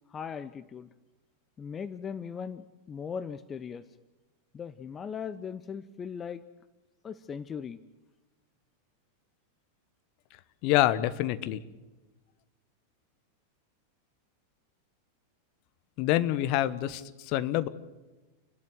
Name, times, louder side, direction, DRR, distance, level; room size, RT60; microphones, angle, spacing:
voice 1, 0.1-0.9 1.6-3.8 4.5-6.4 7.0-7.8, left 7 dB, 20° left, 13 dB, 0.8 m, -38 dB
voice 2, 10.6-11.6 16.0-17.7, left 14 dB, 45° left, 13 dB, 1.1 m, -26 dB
29.5 x 12.0 x 9.2 m, 1.1 s
figure-of-eight pair, 90°, 0 cm